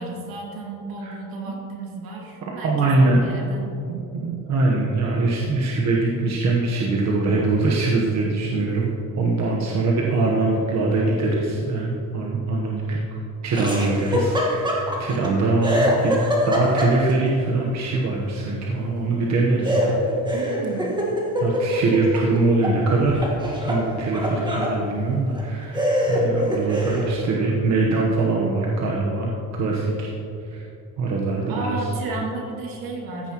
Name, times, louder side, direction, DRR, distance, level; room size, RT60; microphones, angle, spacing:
voice 1, 0.0-3.7 20.3-20.9 31.5-33.3, right 3 dB, 70° right, -1 dB, 2.4 m, -33 dB
voice 2, 2.6-3.2 3.9-16.1 16.5-20.2 21.4-23.2 23.6-30.1 30.4-30.7 31.0-31.9, right 3 dB, 50° right, -2 dB, 1.2 m, -23 dB
Laughter, 13.5-15.3 15.6-17.3 19.6-22.8 23.1-24.8 25.3-25.4 25.7-27.1, left 1 dB, 10° right, 1.5 m, -24 dB
14.5 x 9.8 x 3.0 m, 2.8 s
cardioid pair, 160°, 36 cm